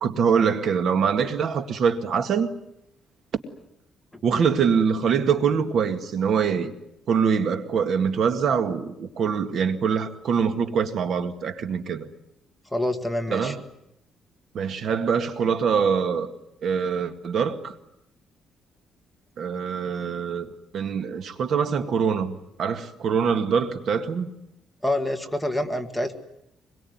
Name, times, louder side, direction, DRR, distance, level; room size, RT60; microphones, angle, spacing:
voice 1, 0.0-2.5 4.2-6.7 7.1-12.1 13.3-13.6 14.5-16.3 16.6-17.8 19.4-24.3, right 6 dB, 50° right, 1.9 m, -24 dB
voice 2, 12.7-13.5 24.8-26.1, left 1 dB, 5° left, 1.8 m, -26 dB
25.0 x 22.0 x 9.5 m
cardioid pair, 155°, 0 cm